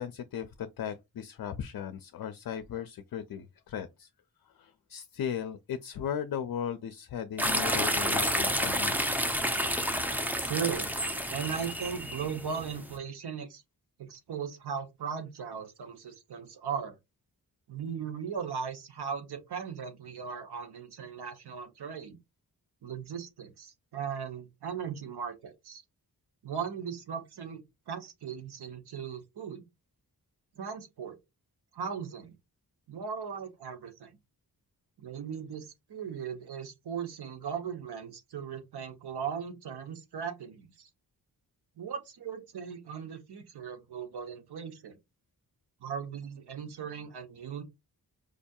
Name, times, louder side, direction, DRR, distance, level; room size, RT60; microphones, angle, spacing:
voice 1, 0.0-4.1 4.5-9.0, left 8 dB, 60° left, 0.5 m, -37 dB
sound 1, 7.4-12.9, equal, 5° right, 0.5 m, -30 dB
voice 2, 10.4-10.9 11.3-13.6 14.0-17.0 17.7-22.2 22.8-25.8 26.4-29.7 30.5-31.2 31.7-32.3 32.9-34.1 35.0-40.9 41.8-45.0 45.8-47.6, right 7 dB, 85° right, 0.9 m, -38 dB
4.9 x 2.6 x 2.3 m
wide cardioid pair, 130°, 38 cm